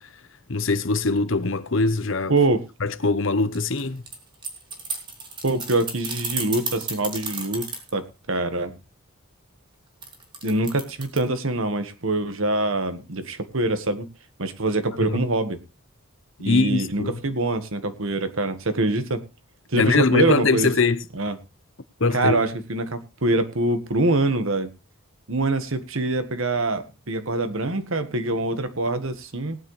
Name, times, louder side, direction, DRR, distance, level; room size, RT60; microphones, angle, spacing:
voice 1, 0.5-2.3 2.8-4.0 15.0-15.2 16.5-17.2 19.8-21.0 22.0-22.4, left 3 dB, 65° left, 0.9 m, -22 dB
sound 1, 3.5-7.9 10.0-11.2, right 4 dB, 20° right, 2.5 m, -32 dB
voice 2, 5.4-7.6 7.9-8.8 10.4-14.1 14.4-15.6 16.4-19.2 19.7-20.7 21.1-21.3 22.1-24.7 25.3-29.6, right 2 dB, 75° right, 1.6 m, -24 dB
18.5 x 9.7 x 3.3 m
head